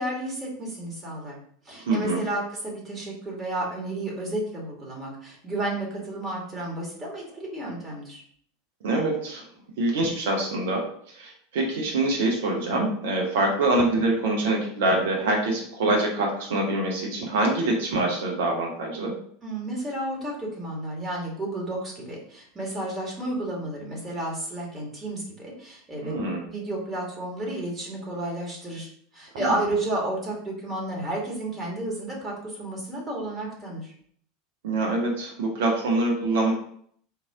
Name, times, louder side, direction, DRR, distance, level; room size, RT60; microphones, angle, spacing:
voice 1, 0.0-1.4 1.6-8.2 19.4-26.1 26.4-33.9, right 1 dB, 20° right, -3 dB, 1.9 m, -32 dB
voice 2, 1.7-2.2 8.8-9.4 9.8-19.1 26.0-26.4 29.3-29.6 34.6-36.5, right 2 dB, 60° right, 0 dB, 1.0 m, -25 dB
4.5 x 2.8 x 3.6 m, 0.62 s
figure-of-eight pair, 80°, 0 cm